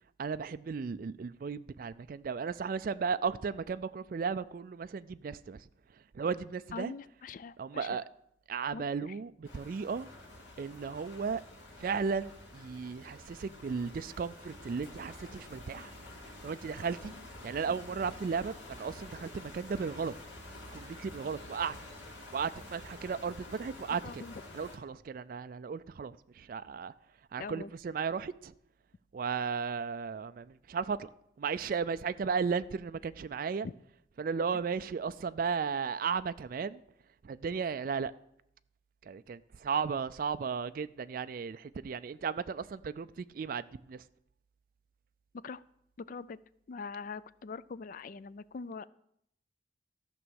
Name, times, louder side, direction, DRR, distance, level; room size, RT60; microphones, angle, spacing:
voice 1, 0.2-5.6 6.1-6.9 7.6-8.0 8.5-10.1 10.6-11.4 11.8-15.9 16.4-17.1 17.4-20.1 20.7-21.8 22.3-24.2 24.5-26.9 27.3-28.5 29.1-31.1 31.4-33.7 34.2-36.8 37.2-38.1 39.0-44.0, right 5 dB, 50° right, 0.3 m, -35 dB
voice 2, 6.7-8.0 8.7-8.8 24.0-24.4 27.4-27.7 33.6-33.7 45.4-45.6 46.0-46.4 46.7-48.9, left 4 dB, 45° left, 0.3 m, -42 dB
sound 1, 9.4-24.8, left 1 dB, 90° left, 3.2 m, -49 dB
14.0 x 6.0 x 6.4 m
head